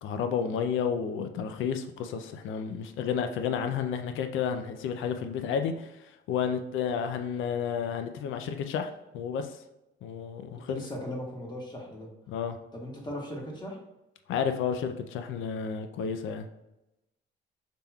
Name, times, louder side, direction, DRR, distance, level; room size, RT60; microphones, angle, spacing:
voice 1, 0.0-9.6 10.0-10.8 12.3-12.6 14.3-16.5, left 7 dB, 80° left, 7 dB, 0.5 m, -31 dB
voice 2, 10.7-12.1 12.7-13.8, left 1 dB, 20° left, -2 dB, 1.5 m, -38 dB
5.8 x 3.5 x 2.3 m, 0.94 s
cardioid pair, 90°, 20 cm